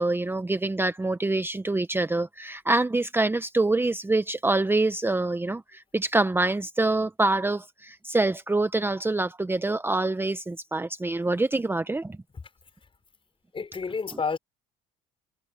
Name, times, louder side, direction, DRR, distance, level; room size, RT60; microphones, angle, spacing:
voice 1, 0.0-12.2, right 2 dB, 10° right, 1.0 m, -25 dB
voice 2, 13.5-14.4, left 5 dB, 30° left, 4.5 m, -29 dB
supercardioid pair, 70°, 18 cm